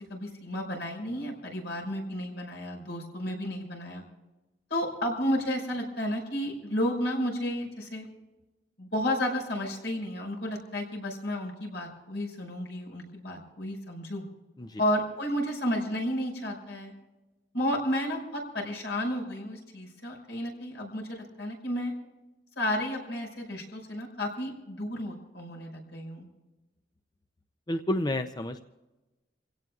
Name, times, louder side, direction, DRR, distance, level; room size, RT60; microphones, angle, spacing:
voice 1, 0.0-4.0 4.7-8.1 8.8-14.2 14.8-16.9 17.5-21.9 22.6-26.3, equal, 75° left, 0 dB, 5.6 m, -32 dB
voice 2, 27.7-28.6, left 1 dB, 25° left, 8 dB, 0.5 m, -30 dB
28.5 x 17.0 x 2.4 m, 1.1 s
head